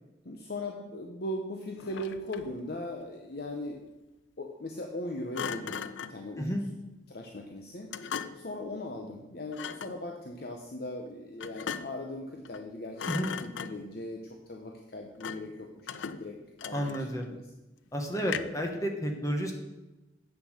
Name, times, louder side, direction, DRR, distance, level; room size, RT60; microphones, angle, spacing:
voice 1, 0.2-3.9 4.4-6.6 7.1-7.9 8.3-17.4, left 1 dB, 55° left, 2 dB, 0.8 m, -39 dB
Thump thud, 1.8-2.6 5.3-6.2 7.9-8.6 9.5-10.0 11.4-12.1 12.4-12.7 13.0-14.0 15.2-15.6 15.9-17.2 18.2-18.7, left 7 dB, 85° left, 0.5 m, -38 dB
voice 2, 16.7-17.3 17.9-19.5, equal, 15° left, 3 dB, 1.1 m, -31 dB
8.4 x 6.5 x 6.5 m, 1.0 s
head